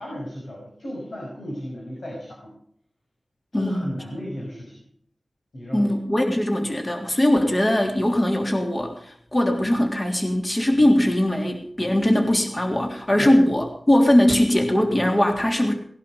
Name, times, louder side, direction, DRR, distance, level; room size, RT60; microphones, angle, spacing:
voice 1, 0.0-2.5 3.5-4.8 5.5-6.0 13.1-13.3, equal, 80° left, -3 dB, 6.1 m, -34 dB
voice 2, 3.5-3.9 5.7-15.7, left 1 dB, 30° left, 2 dB, 3.4 m, -20 dB
19.5 x 11.5 x 5.2 m, 0.64 s
wide cardioid pair, 70°, 0 cm